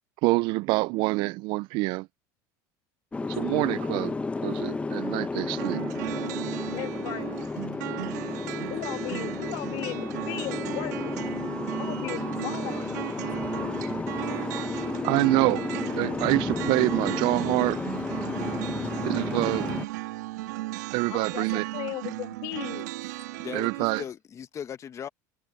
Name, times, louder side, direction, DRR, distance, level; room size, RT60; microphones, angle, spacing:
voice 1, 0.2-2.1 3.3-4.1 4.4-5.8 15.0-17.8 19.0-19.7 20.9-21.7 23.5-24.0, right 24 dB, 60° right, 0.4 m, -26 dB
Boat Water vehicle, 3.1-19.9, left 3 dB, 15° left, 0.8 m, -32 dB
sound 1, 5.6-24.0, right 19 dB, 90° right, 2.0 m, -36 dB
voice 2, 6.7-7.6 8.7-11.3 11.8-13.0 14.9-15.0 21.1-22.9, left 20 dB, 65° left, 1.7 m, -37 dB
voice 3, 23.3-25.1, left 8 dB, 35° left, 1.4 m, -38 dB
supercardioid pair, 110°, 9 cm